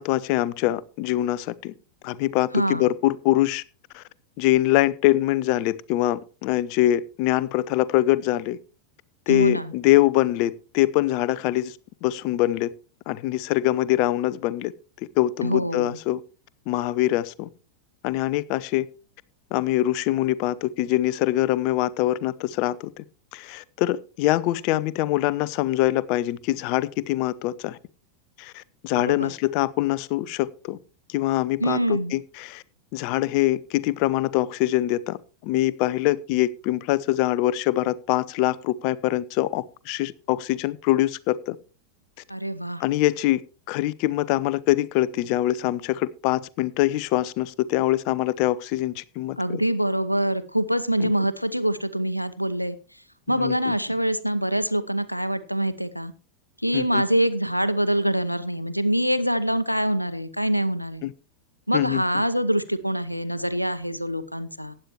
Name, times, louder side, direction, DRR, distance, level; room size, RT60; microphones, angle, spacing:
voice 1, 0.0-1.7 2.0-3.6 3.9-4.0 4.4-8.6 9.3-12.7 13.1-14.7 15.2-16.2 16.7-17.5 18.0-18.9 19.5-23.0 23.3-27.8 28.4-30.8 31.1-32.6 32.9-35.2 35.4-41.6 42.8-43.4 43.7-49.6 51.0-51.1 53.3-53.7 56.7-57.0 61.0-61.1 61.7-62.0, left 15 dB, 45° left, 0.6 m, -24 dB
voice 2, 2.5-2.8 9.3-9.7 15.4-16.0 28.9-29.3 31.6-32.1 42.3-42.8 49.4-52.7 53.3-56.1 56.6-61.1 61.7-64.7, right 1 dB, 90° left, 0.8 m, -25 dB
15.5 x 9.8 x 3.1 m
figure-of-eight pair, 90°, 0 cm